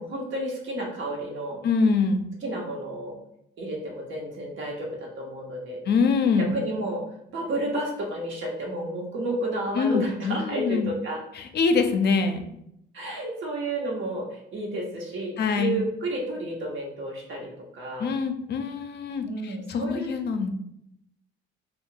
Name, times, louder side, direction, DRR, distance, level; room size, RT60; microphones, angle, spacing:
voice 1, 0.0-1.6 2.4-3.2 3.6-5.8 6.4-7.0 7.3-11.2 12.9-14.2 14.5-18.1 19.2-20.1, right 1 dB, 75° right, -1 dB, 1.0 m, -31 dB
voice 2, 1.6-2.2 5.9-6.5 9.7-10.9 11.3-12.4 15.4-15.8 18.0-20.5, left 5 dB, 55° left, 7 dB, 0.4 m, -24 dB
2.7 x 2.3 x 3.7 m, 0.77 s
cardioid pair, 90°, 20 cm